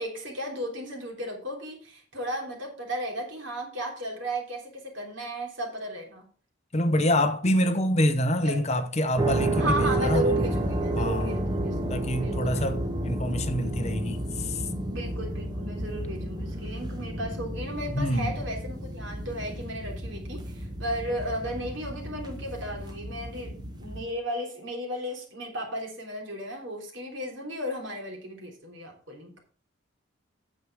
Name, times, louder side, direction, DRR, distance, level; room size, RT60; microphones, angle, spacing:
voice 1, 0.0-6.2 8.4-8.6 9.6-12.7 14.9-23.5 23.8-29.5, equal, 65° right, 3.3 m, -35 dB
voice 2, 6.7-10.2 11.0-11.3 11.9-14.7 17.9-18.4, left 1 dB, 30° left, 0.8 m, -26 dB
sound 1, 9.2-24.0, right 1 dB, 20° right, 1.3 m, -31 dB
8.9 x 7.6 x 4.7 m
head